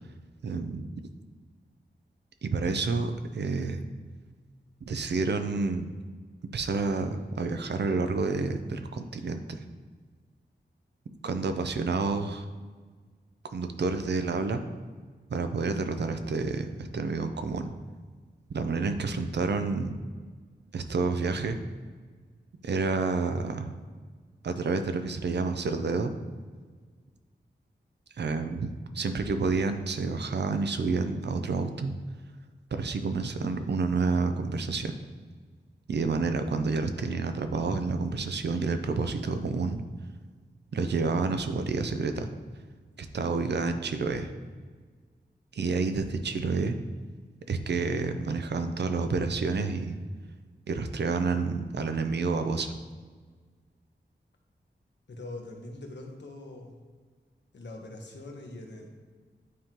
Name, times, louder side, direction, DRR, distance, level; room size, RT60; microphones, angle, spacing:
voice 1, 0.4-0.9 2.4-3.8 4.9-5.9 6.5-9.6 11.2-12.5 13.5-14.6 15.3-17.7 18.5-19.9 20.7-21.6 22.6-23.7 24.4-26.1 28.2-28.7 28.9-31.9 32.7-34.9 35.9-39.8 40.7-42.3 43.0-44.3 45.5-46.8 47.5-50.0 50.7-52.7, right 4 dB, 65° right, 8 dB, 0.5 m, -29 dB
voice 2, 55.1-56.8 57.5-58.9, left 2 dB, 70° left, 1 dB, 1.1 m, -42 dB
9.4 x 3.7 x 2.9 m, 1.5 s
wide cardioid pair, 85°, 19 cm